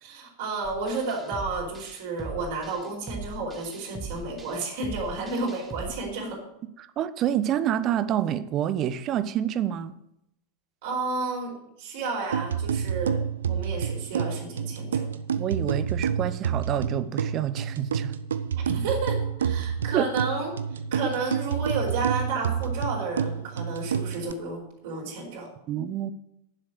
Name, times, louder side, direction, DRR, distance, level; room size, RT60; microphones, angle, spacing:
voice 1, 0.0-6.4 10.8-13.2 13.5-15.1 18.5-20.5 20.9-25.5, right 3 dB, 50° right, -1 dB, 4.5 m, -31 dB
sound 1, 0.6-5.9, right 2 dB, 15° right, 1.5 m, -40 dB
voice 2, 6.8-9.9 15.4-18.2 19.9-20.1 25.7-26.1, right 10 dB, 35° right, 14 dB, 0.8 m, -27 dB
sound 2, 12.3-24.3, right 7 dB, 65° right, 0.7 m, -28 dB
10.0 x 7.5 x 7.8 m, 0.80 s
figure-of-eight pair, 90°, 0 cm